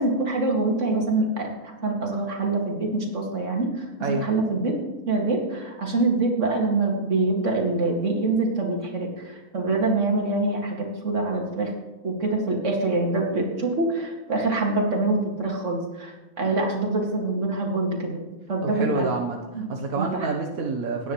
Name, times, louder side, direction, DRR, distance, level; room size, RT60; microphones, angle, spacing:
voice 1, 0.0-4.8 5.1-11.7 12.0-18.2 18.5-19.1 19.5-19.7 19.9-20.3, right 2 dB, 60° right, 0 dB, 2.4 m, -25 dB
voice 2, 18.6-21.1, right 3 dB, 90° right, 1 dB, 1.5 m, -28 dB
17.5 x 9.8 x 3.1 m, 1.1 s
omnidirectional pair, 1.5 m